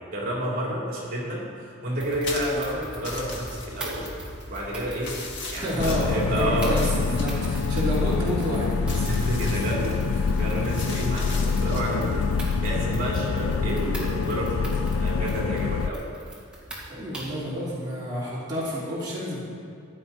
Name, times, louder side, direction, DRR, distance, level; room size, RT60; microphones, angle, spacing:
voice 1, 0.0-4.1 4.5-5.1 5.5-6.8 8.9-12.3 12.6-16.0, right 1 dB, 45° right, -5 dB, 3.5 m, -30 dB
sound 1, 2.0-17.5, right 1 dB, 5° right, 2.3 m, -42 dB
sound 2, 2.2-14.7, left 2 dB, 60° left, 2.0 m, -40 dB
voice 2, 5.6-8.8 9.4-10.4 16.9-19.4, equal, 20° right, -10 dB, 3.1 m, -30 dB
sound 3, 5.8-15.9, left 5 dB, 85° left, 0.4 m, -26 dB
15.5 x 10.5 x 4.3 m, 2.4 s
head